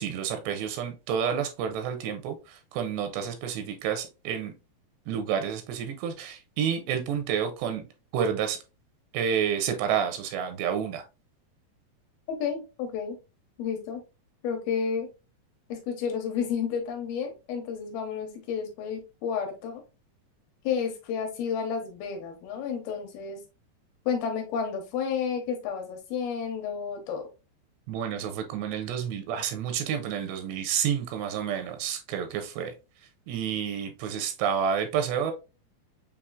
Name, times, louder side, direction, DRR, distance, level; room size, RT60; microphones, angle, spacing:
voice 1, 0.0-4.5 5.1-7.8 8.1-8.6 9.1-11.0 27.9-32.7 33.3-35.3, right 8 dB, 85° right, 2.7 m, -29 dB
voice 2, 12.3-13.2 13.6-14.0 14.4-15.1 15.7-19.8 20.6-23.4 24.1-27.3, left 6 dB, 75° left, 2.5 m, -31 dB
6.9 x 2.7 x 2.4 m
omnidirectional pair, 5.0 m